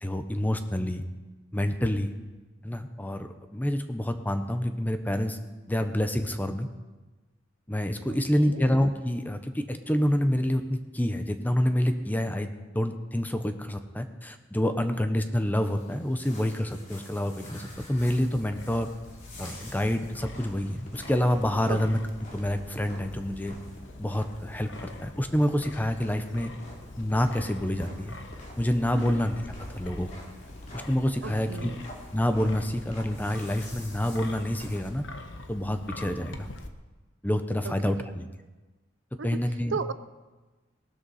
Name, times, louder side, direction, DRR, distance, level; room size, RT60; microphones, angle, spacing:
voice 1, 0.0-1.0 1.5-2.1 2.6-5.4 5.7-6.7 7.7-12.5 12.7-18.9 19.4-22.0 22.3-23.6 24.0-26.5 27.0-28.2 28.6-29.3 29.7-30.1 30.7-31.7 32.1-35.0 35.5-36.5 37.2-38.3 39.2-39.8, equal, 10° left, 8 dB, 0.8 m, -27 dB
voice 2, 8.1-8.6 21.7-21.8 28.9-29.2 31.2-31.8 37.6-37.9 39.2-39.4 39.7-39.9, right 5 dB, 75° right, 13 dB, 0.6 m, -35 dB
sound 1, 15.5-34.9, left 1 dB, 40° left, 3.1 m, -48 dB
Wind, 17.7-36.7, left 2 dB, 65° left, 1.1 m, -44 dB
18.5 x 12.0 x 4.2 m, 1.2 s
head